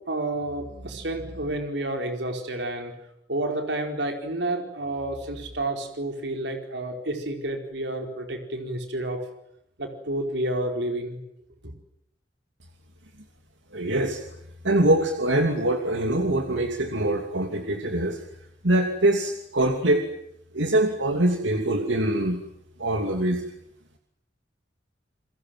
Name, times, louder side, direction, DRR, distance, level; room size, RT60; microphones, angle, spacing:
voice 1, 0.1-2.9 3.3-9.2 9.8-11.2, right 1 dB, 70° right, 5 dB, 4.5 m, -30 dB
voice 2, 13.7-14.2 14.6-18.2 18.6-20.1 20.5-22.4 22.8-23.4, right 1 dB, 90° right, 4 dB, 2.8 m, -23 dB
29.0 x 23.0 x 7.7 m, 0.75 s
head